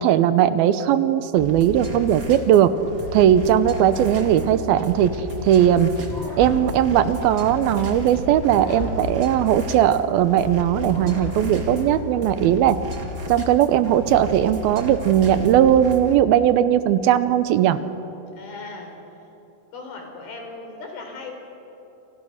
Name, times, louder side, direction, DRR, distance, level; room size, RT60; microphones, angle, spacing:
voice 1, 0.0-2.7 3.1-5.1 5.4-5.9 6.4-12.8 13.3-17.8, right 10 dB, 80° right, 12 dB, 2.6 m, -18 dB
sound 1, 1.4-16.1, left 2 dB, 30° right, 2.2 m, -33 dB
Scratching (performance technique), 4.8-6.1 6.4-6.5 6.9-8.2 8.7-8.8, left 2 dB, 40° left, 3.4 m, -40 dB
sound 2, 6.1-8.0 8.5-10.4 10.9-12.6, left 1 dB, 10° left, 4.2 m, -37 dB
voice 2, 18.3-19.0 19.7-21.3, left 3 dB, 70° left, 3 dB, 5.7 m, -38 dB
28.5 x 28.0 x 6.5 m, 2.9 s
omnidirectional pair, 4.5 m